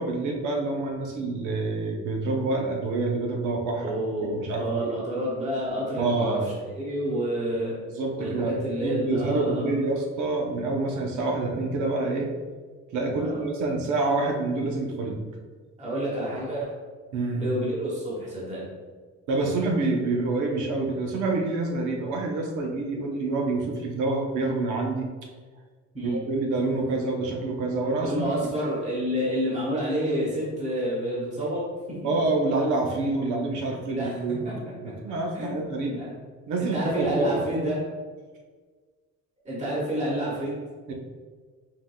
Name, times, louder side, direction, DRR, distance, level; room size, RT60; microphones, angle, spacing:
voice 1, 0.0-4.0 4.2-4.9 6.0-6.5 8.0-8.5 8.8-12.3 12.9-15.2 17.1-17.5 19.3-25.1 26.0-28.1 28.4-28.5 32.0-34.5 34.8-36.0 36.5-37.7 40.9-41.0, right 2 dB, 85° right, 1 dB, 0.8 m, -27 dB
voice 2, 3.8-7.8 8.2-9.7 13.2-13.4 15.8-16.7 17.3-18.7 25.9-26.2 28.1-32.0 33.6-34.2 34.4-34.5 35.1-36.1 36.6-37.8 39.4-40.5, equal, 25° right, -6 dB, 1.1 m, -29 dB
4.6 x 3.6 x 2.2 m, 1.5 s
cardioid pair, 160°, 29 cm